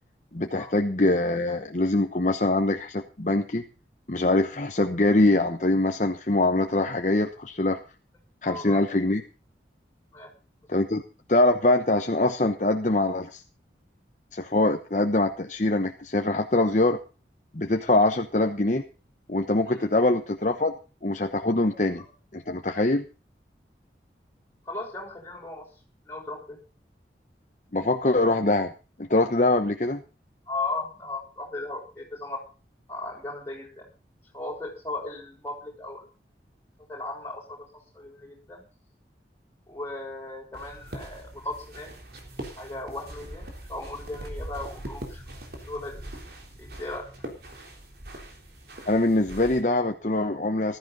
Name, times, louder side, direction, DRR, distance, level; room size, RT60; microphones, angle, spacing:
voice 1, 0.3-3.6 4.1-7.8 8.4-9.2 10.7-11.0 11.3-13.4 14.3-17.0 17.5-18.8 19.3-20.7 21.0-22.0 22.3-23.0 27.7-28.7 29.0-30.0 48.9-50.8, left 2 dB, 40° left, 5 dB, 1.0 m, -23 dB
voice 2, 8.4-8.8 10.1-10.3 21.7-21.8 22.7-22.8 24.7-25.7 26.0-26.6 30.5-32.4 32.9-33.9 34.3-36.0 36.9-37.6 37.9-38.7 39.7-41.9 42.6-45.2 45.7-46.0 46.6-47.1, left 2 dB, 15° left, -2 dB, 5.9 m, -36 dB
sound 1, 40.5-49.6, right 1 dB, 60° right, 3.6 m, -41 dB
15.5 x 14.0 x 4.0 m, 0.34 s
head